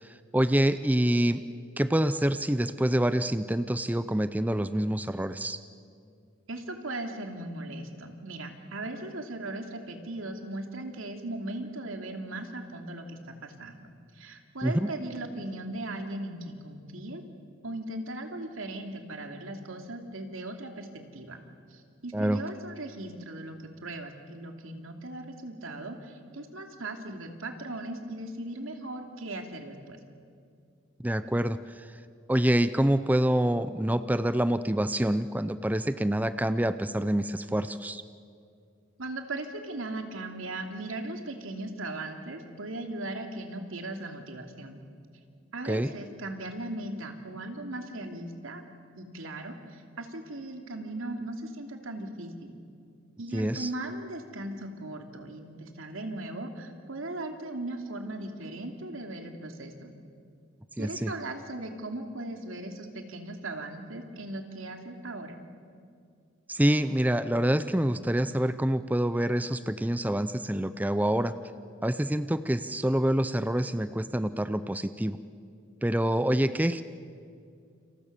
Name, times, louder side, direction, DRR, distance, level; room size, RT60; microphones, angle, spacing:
voice 1, 0.0-1.4 1.8-5.6 14.6-14.9 22.1-22.4 31.0-32.0 32.3-38.0 45.6-45.9 53.3-53.7 60.8-61.1 66.5-71.3 71.8-75.2 75.8-76.8, right 1 dB, 10° right, 12 dB, 0.6 m, -26 dB
voice 2, 6.5-17.2 17.6-20.9 21.1-21.4 21.7-30.0 39.0-44.8 45.5-48.6 49.0-52.5 53.2-59.9 60.8-65.4, right 2 dB, 85° right, 4 dB, 2.8 m, -38 dB
29.0 x 28.0 x 6.9 m, 2.3 s
head